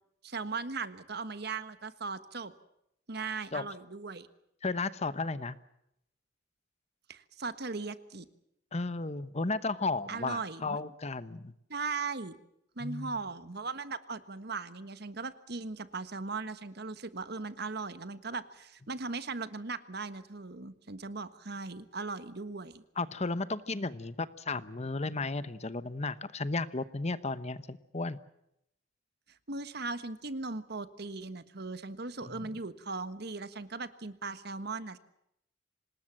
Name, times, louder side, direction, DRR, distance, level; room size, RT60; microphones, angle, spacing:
voice 1, 0.2-2.5 3.1-4.3 7.1-8.3 10.1-10.8 11.7-12.4 12.8-22.8 29.5-35.0, right 4 dB, 55° right, 12 dB, 1.4 m, -38 dB
voice 2, 4.6-5.6 8.7-11.5 12.8-13.1 23.0-28.2 32.3-32.4, left 3 dB, 35° left, 14 dB, 1.0 m, -34 dB
26.0 x 20.0 x 7.5 m, 0.78 s
head